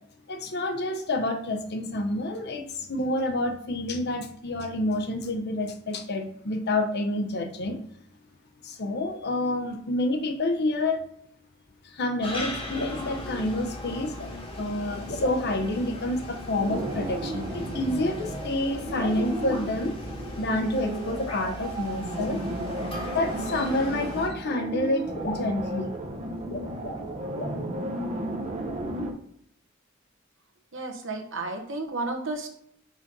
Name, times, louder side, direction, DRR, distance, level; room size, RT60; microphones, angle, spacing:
voice 1, 0.3-7.8 8.6-11.0 11.8-14.2 14.6-19.9 20.4-22.4 23.1-25.9, left 1 dB, 55° left, 5 dB, 0.8 m, -28 dB
sound 1, 12.2-24.3, left 1 dB, 25° left, 1.3 m, -38 dB
sound 2, 12.3-12.5 12.8-13.1 14.2-14.3 15.0-15.9 16.6-16.9 18.9-19.6 21.3-21.4 22.7-22.8 24.0-24.1 24.5-24.6 24.8-24.9 25.1-25.5 26.4-27.1 27.4-27.6, left 1 dB, 90° left, 2.1 m, -37 dB
sound 3, 16.7-29.1, right 1 dB, 30° right, 0.7 m, -34 dB
voice 2, 30.7-32.5, right 2 dB, 65° right, 3 dB, 1.1 m, -32 dB
4.9 x 4.0 x 5.3 m, 0.69 s
head